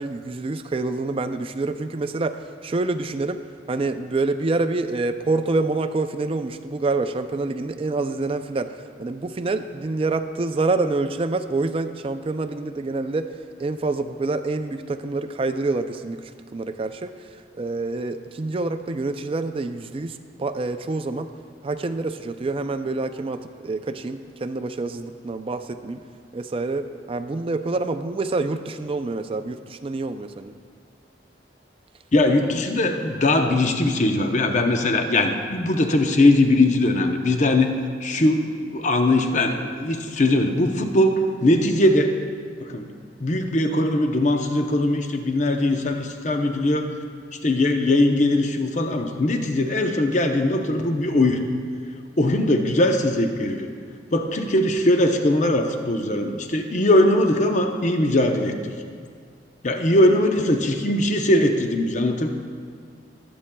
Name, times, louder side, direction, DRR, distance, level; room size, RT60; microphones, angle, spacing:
voice 1, 0.0-2.4 2.6-3.4 3.7-8.7 9.0-13.3 13.6-17.1 17.5-21.3 21.6-26.0 26.3-30.6, right 3 dB, 30° right, 9 dB, 0.4 m, -27 dB
voice 2, 32.1-37.7 38.0-42.1 42.6-42.9 43.2-46.9 47.4-51.4 52.2-53.7 54.1-58.5 59.6-62.3, left 1 dB, 40° left, 5 dB, 0.7 m, -20 dB
22.0 x 8.5 x 2.3 m, 2.1 s
head